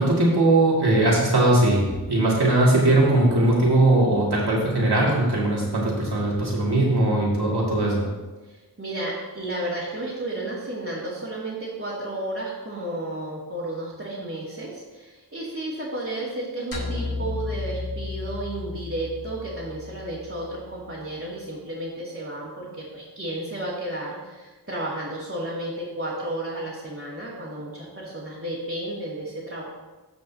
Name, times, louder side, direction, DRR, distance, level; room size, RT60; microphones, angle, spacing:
voice 1, 0.0-1.8 2.1-8.1, right 2 dB, 75° right, -4 dB, 2.5 m, -20 dB
voice 2, 8.4-29.6, right 1 dB, 35° right, -9 dB, 2.3 m, -32 dB
sound 1, 16.7-21.1, left 3 dB, 55° left, 2.0 m, -34 dB
15.0 x 5.2 x 2.9 m, 1.2 s
wide cardioid pair, 55°, 39 cm